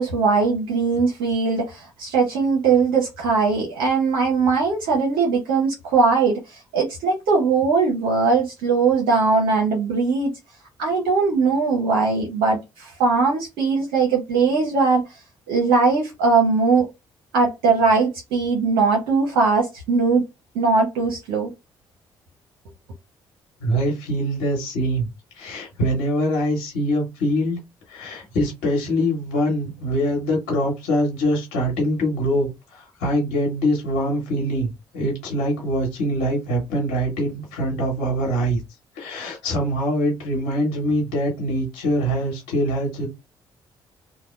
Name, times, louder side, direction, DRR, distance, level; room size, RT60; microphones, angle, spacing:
voice 1, 0.0-10.3 10.8-15.0 15.5-16.9 17.3-20.2 20.5-21.5, right 4 dB, 80° right, 0.8 m, -20 dB
voice 2, 23.6-25.1 25.4-27.6 27.9-32.5 33.0-34.7 34.9-38.6 39.0-43.1, equal, 85° left, 1.2 m, -23 dB
2.8 x 2.2 x 3.1 m
hypercardioid pair, 50°, 12 cm